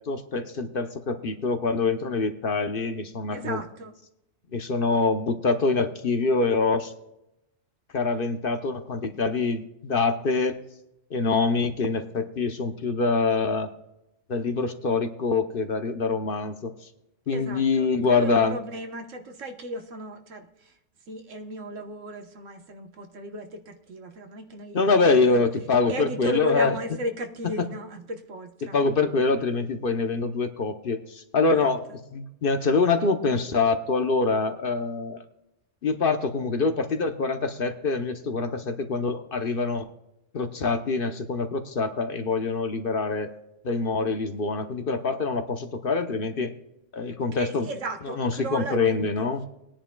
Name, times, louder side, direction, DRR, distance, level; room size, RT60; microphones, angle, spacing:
voice 1, 0.1-3.6 4.5-6.9 7.9-10.6 11.1-13.7 14.3-16.7 17.3-18.6 24.7-26.7 27.6-27.7 28.7-31.8 32.1-35.2 35.8-39.9 40.3-43.3 43.6-46.5 46.9-47.7 48.2-49.4, left 4 dB, 50° left, 7 dB, 0.9 m, -25 dB
voice 2, 3.3-3.9 17.3-20.8 21.1-25.4 25.9-28.8 31.5-31.7 47.2-49.3, right 1 dB, 80° right, 5 dB, 1.5 m, -36 dB
21.0 x 10.0 x 2.3 m, 0.87 s
omnidirectional pair, 1.3 m